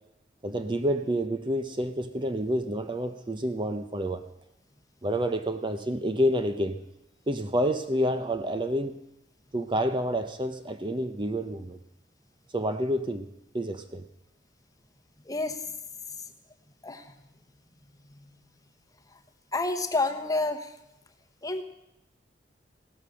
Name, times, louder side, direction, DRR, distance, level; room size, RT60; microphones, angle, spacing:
voice 1, 0.4-4.2 5.0-6.8 7.3-9.0 9.5-11.8 12.5-13.3 13.5-14.0, equal, 25° right, 9 dB, 0.7 m, -28 dB
voice 2, 15.3-15.6 16.8-17.0 18.2-18.3 19.5-20.7 21.4-21.6, left 2 dB, 20° left, 6 dB, 1.1 m, -29 dB
16.5 x 12.5 x 6.3 m, 0.85 s
head